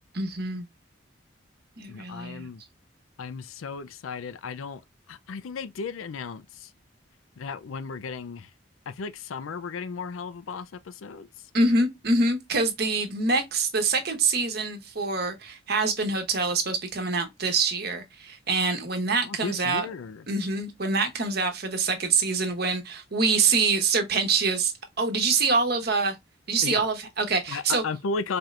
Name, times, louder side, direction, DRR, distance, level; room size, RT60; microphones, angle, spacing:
voice 1, 0.1-0.7 1.8-2.5 11.5-19.9 20.3-24.7 25.0-26.2 26.5-27.8, right 4 dB, 50° right, 1.0 m, -25 dB
voice 2, 1.9-2.6 3.2-4.8 5.1-6.7 7.4-8.5 8.9-11.5 19.3-20.3 26.6-26.9 27.5-28.4, left 4 dB, 85° left, 0.4 m, -35 dB
4.3 x 3.2 x 2.4 m
head